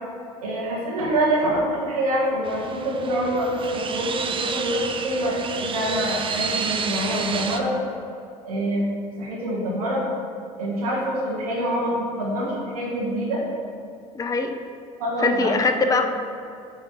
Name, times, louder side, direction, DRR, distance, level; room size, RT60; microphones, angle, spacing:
voice 1, 0.4-7.7 8.4-8.9 9.2-10.0 10.6-13.4 15.0-16.0, right 1 dB, 85° right, -6 dB, 1.5 m, -25 dB
sound 1, 2.4-7.6, right 5 dB, 30° right, 0.5 m, -30 dB
voice 2, 14.1-14.6 15.2-16.0, left 4 dB, 20° left, 6 dB, 0.5 m, -22 dB
8.8 x 3.2 x 4.3 m, 2.5 s
hypercardioid pair, 65°, 19 cm